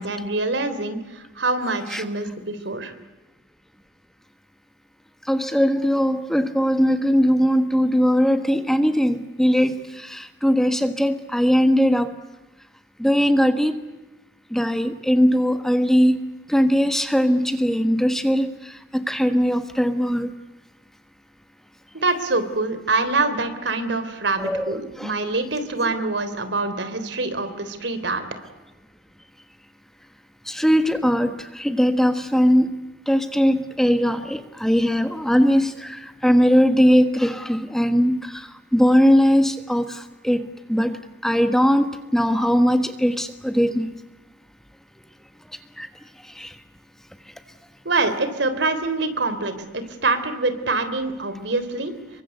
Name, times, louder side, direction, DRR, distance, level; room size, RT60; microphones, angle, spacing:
voice 1, 0.0-2.9 21.9-28.2 47.9-51.9, right 3 dB, 75° right, 11 dB, 3.5 m, -25 dB
voice 2, 5.3-12.1 13.0-13.8 14.5-20.3 24.4-25.1 25.8-25.9 30.5-32.7 33.1-43.9 45.8-45.9 46.3-46.5, equal, ahead, 8 dB, 1.4 m, -20 dB
28.0 x 24.0 x 8.1 m, 1.1 s
head